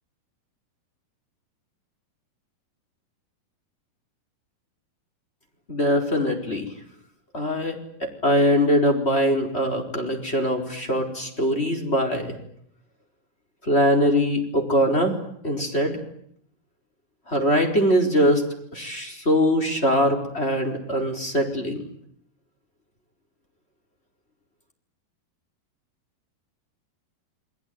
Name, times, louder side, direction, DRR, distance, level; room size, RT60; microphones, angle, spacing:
voice 1, 5.7-6.7 7.3-12.4 13.6-15.2 15.4-16.0 17.3-18.4 18.7-21.8, equal, 15° left, 2 dB, 4.4 m, -22 dB
30.0 x 21.0 x 9.5 m, 0.70 s
omnidirectional pair, 4.6 m